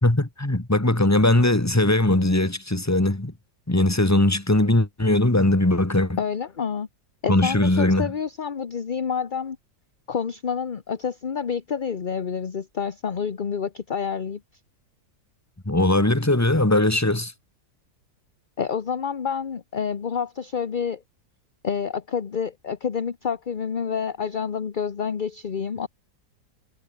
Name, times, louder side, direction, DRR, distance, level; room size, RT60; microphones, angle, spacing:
voice 1, 0.0-3.3 3.7-6.2 7.3-8.1 15.7-17.3, left 1 dB, 10° left, 1.9 m, -20 dB
voice 2, 6.2-6.9 7.2-9.6 10.1-14.4 18.6-21.0 21.6-25.9, left 6 dB, 35° left, 1.0 m, -28 dB
omnidirectional pair, 1.8 m